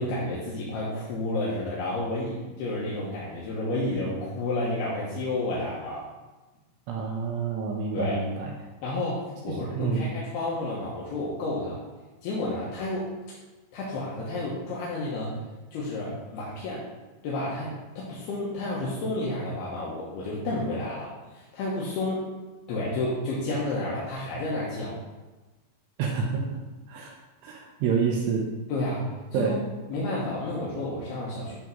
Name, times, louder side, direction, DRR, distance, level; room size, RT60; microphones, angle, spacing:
voice 1, 0.0-6.1 7.9-8.2 8.8-11.8 12.2-13.1 13.7-15.4 15.7-16.8 17.2-22.2 22.7-25.0 28.7-29.5 29.9-31.6, left 2 dB, 70° left, -6 dB, 2.6 m, -31 dB
voice 2, 6.9-8.5 9.5-10.1 26.0-26.6 26.9-27.1 27.4-28.5 29.3-29.6, right 5 dB, 80° right, 0 dB, 2.4 m, -28 dB
10.5 x 3.7 x 5.9 m, 1.2 s
omnidirectional pair, 5.9 m